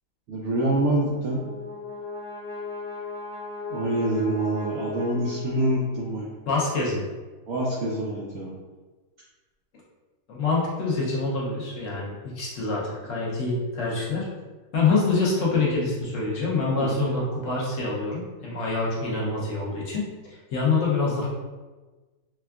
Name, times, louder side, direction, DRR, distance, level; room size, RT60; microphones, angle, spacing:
voice 1, 0.3-1.4 3.7-6.3 7.5-8.5 16.7-17.1, right 1 dB, 80° right, -5 dB, 0.6 m, -26 dB
Brass instrument, 0.9-5.9, left 4 dB, 60° right, 1.1 m, -37 dB
voice 2, 6.5-7.0 10.3-14.3 14.7-21.3, left 3 dB, 60° left, -5 dB, 1.0 m, -26 dB
4.4 x 2.2 x 2.3 m, 1.3 s
omnidirectional pair, 1.8 m